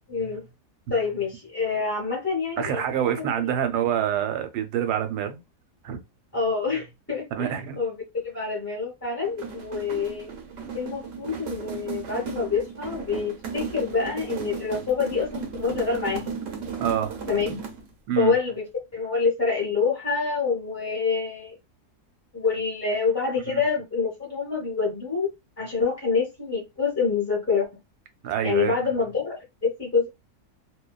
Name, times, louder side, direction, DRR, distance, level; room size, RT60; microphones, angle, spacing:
voice 1, 0.1-0.4 0.9-2.9 3.4-3.5 6.3-7.5 7.8-10.3 10.7-16.4 17.3-17.6 18.2-18.6 18.9-21.6 22.3-25.3 25.6-27.7 28.4-29.3 29.6-30.1, left 5 dB, 20° left, 0.5 m, -26 dB
voice 2, 2.6-5.4 5.8-6.0 7.4-7.8 16.8-17.1 18.1-18.3 23.5-23.6 28.2-28.7, right 9 dB, 85° right, 1.1 m, -26 dB
sound 1, 9.2-17.9, right 6 dB, 60° right, 0.9 m, -35 dB
2.6 x 2.2 x 2.2 m
omnidirectional pair, 1.7 m